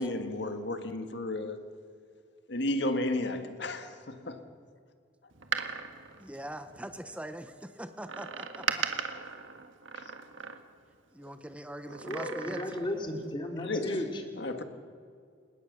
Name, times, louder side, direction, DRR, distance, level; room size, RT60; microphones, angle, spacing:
voice 1, 0.0-1.6 2.5-4.5 10.0-10.1 13.6-14.0 14.4-14.6, left 1 dB, 60° left, 1.9 m, -33 dB
Door, 5.3-7.1 8.1-10.9 11.9-13.0 13.3-13.4, right 6 dB, 85° right, 1.7 m, -37 dB
voice 2, 6.2-8.8 11.1-12.6, right 1 dB, 5° right, 0.8 m, -42 dB
voice 3, 12.0-14.2, left 1 dB, 25° left, 3.0 m, -34 dB
29.0 x 18.0 x 6.8 m
head